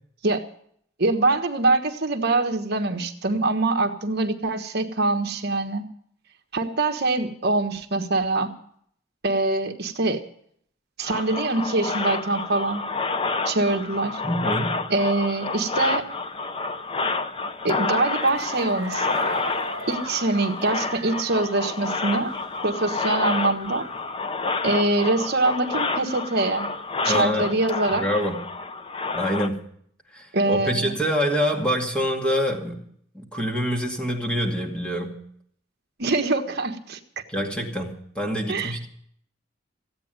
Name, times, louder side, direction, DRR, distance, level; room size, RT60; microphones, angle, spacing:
voice 1, 1.0-5.8 6.5-8.5 9.2-10.2 11.0-12.8 13.4-14.2 14.9-16.0 17.6-19.1 19.9-22.3 22.6-23.9 24.6-26.7 27.0-28.0 30.3-31.0 36.0-37.0 38.5-38.8, right 2 dB, 55° right, 5 dB, 1.4 m, -24 dB
sound 1, 11.0-29.5, left 3 dB, 25° left, 0.8 m, -29 dB
voice 2, 14.2-14.8 27.1-27.5 27.9-28.4 29.1-29.7 30.1-32.8 33.1-35.1 37.3-38.9, equal, 5° left, 0 dB, 2.2 m, -26 dB
sound 2, 17.9-22.6 23.0-24.0, right 4 dB, 80° right, 1.3 m, -39 dB
15.5 x 9.0 x 9.0 m, 0.65 s
head